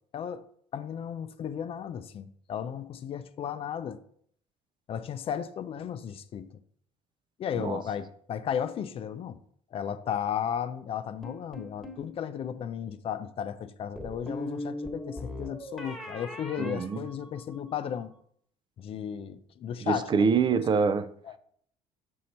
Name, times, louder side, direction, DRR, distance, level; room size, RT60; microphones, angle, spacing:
voice 1, 0.1-0.4 0.7-4.0 4.9-6.6 7.4-9.4 9.7-18.1 18.8-20.6 21.2-21.4, left 8 dB, 45° left, 0.5 m, -34 dB
sound 1, 11.2-12.1 14.0-17.7, left 1 dB, 5° left, 1.4 m, -39 dB
voice 2, 16.6-17.0 19.8-21.1, right 5 dB, 35° right, 0.4 m, -25 dB
6.3 x 4.3 x 4.2 m
cardioid pair, 100°, 13 cm